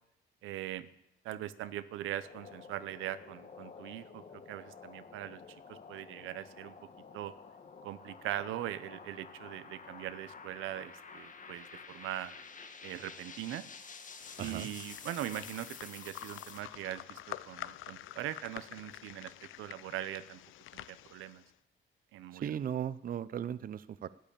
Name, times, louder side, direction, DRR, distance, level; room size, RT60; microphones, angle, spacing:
voice 1, 0.4-0.9 1.2-5.4 5.7-6.8 7.1-7.3 7.8-12.3 12.8-13.6 14.4-19.3 19.6-20.4 20.7-21.4 22.1-22.5, right 13 dB, 90° right, 14 dB, 0.8 m, -41 dB
sound 1, 2.0-16.6, left 5 dB, 40° left, 1.6 m, -51 dB
sound 2, 14.2-21.5, left 14 dB, 85° left, 0.5 m, -48 dB
voice 2, 14.4-14.7 22.3-24.1, right 9 dB, 45° right, 16 dB, 0.5 m, -37 dB
12.5 x 9.9 x 8.7 m, 0.80 s
cardioid pair, 90°, 20 cm